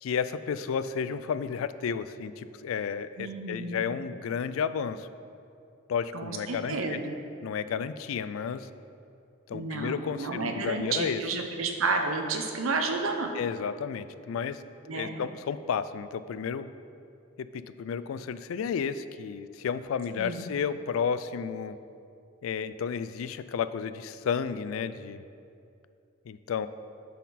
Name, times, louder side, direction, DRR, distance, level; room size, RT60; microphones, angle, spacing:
voice 1, 0.0-5.1 5.9-7.0 7.4-8.7 9.5-11.2 13.3-14.6 14.9-16.7 17.4-21.8 22.4-25.2 26.3-26.7, left 6 dB, 85° left, 13 dB, 0.3 m, -32 dB
voice 2, 3.2-4.0 6.1-7.2 9.5-13.3 14.9-15.2 20.2-20.4, right 3 dB, 85° right, 4 dB, 0.8 m, -31 dB
12.0 x 4.2 x 4.1 m, 2.5 s
head